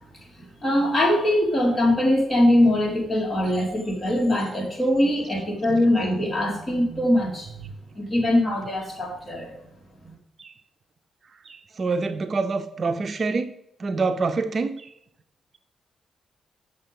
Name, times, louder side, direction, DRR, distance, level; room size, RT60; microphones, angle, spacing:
voice 1, 0.6-7.5 7.9-9.5, left 1 dB, 30° left, 2.8 m, -22 dB
voice 2, 11.4-13.5 13.8-14.9, right 4 dB, 45° right, 0.5 m, -26 dB
6.8 x 6.5 x 5.2 m
cardioid pair, 120°, 0 cm